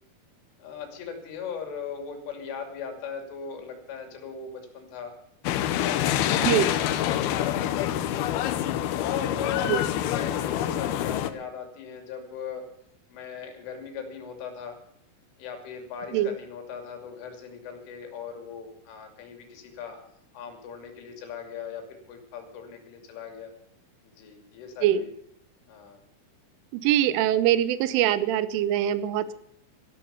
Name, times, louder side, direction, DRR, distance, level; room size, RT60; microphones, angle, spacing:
voice 1, 0.6-5.1 5.7-8.3 8.9-12.7 13.1-14.8 15.4-20.0 20.3-23.5 24.0-25.1 25.7-26.0 29.3-29.4, left 6 dB, 75° left, 5 dB, 5.1 m, -39 dB
sound 1, 5.4-11.3, left 11 dB, 90° left, 2.2 m, -26 dB
voice 2, 6.4-6.7 9.7-9.8 16.1-16.3 24.8-25.0 26.7-29.3, right 11 dB, 80° right, 16 dB, 3.1 m, -23 dB
13.5 x 12.0 x 6.9 m, 0.72 s
omnidirectional pair, 5.8 m